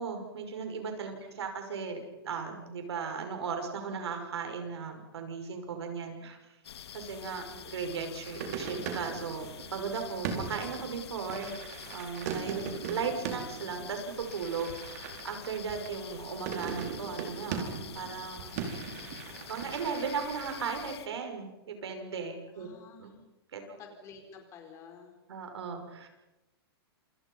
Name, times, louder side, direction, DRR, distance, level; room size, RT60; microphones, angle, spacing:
voice 1, 0.0-6.4 6.9-11.6 11.9-12.6 12.9-18.5 19.5-22.7 23.0-23.1 23.5-23.6 25.3-26.1, right 5 dB, 85° right, 5 dB, 6.1 m, -37 dB
voice 2, 1.1-1.5 7.3-7.8 12.4-12.9 22.5-23.2 23.8-25.2, left 5 dB, 20° left, 4 dB, 4.6 m, -52 dB
sound 1, 6.6-21.1, left 9 dB, 80° left, 1.9 m, -47 dB
sound 2, 8.2-20.6, right 6 dB, 40° right, 4.5 m, -40 dB
28.0 x 27.5 x 5.6 m, 1.0 s
hypercardioid pair, 165°, 13 cm